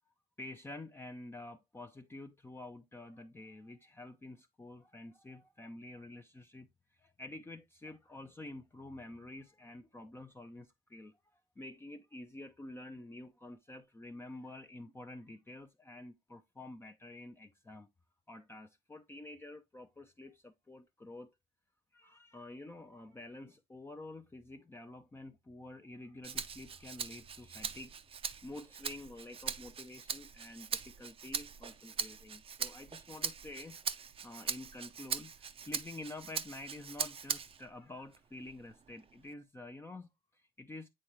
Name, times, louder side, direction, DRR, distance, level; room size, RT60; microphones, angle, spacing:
voice 1, 0.4-11.2 11.6-17.9 18.3-21.3 21.9-28.0 28.4-40.9, left 2 dB, 15° left, 0.5 m, -49 dB
Rattle (instrument), 26.2-37.7 38.1-39.3, right 6 dB, 35° right, 0.6 m, -41 dB
8.7 x 3.8 x 3.2 m
cardioid pair, 110°, 17 cm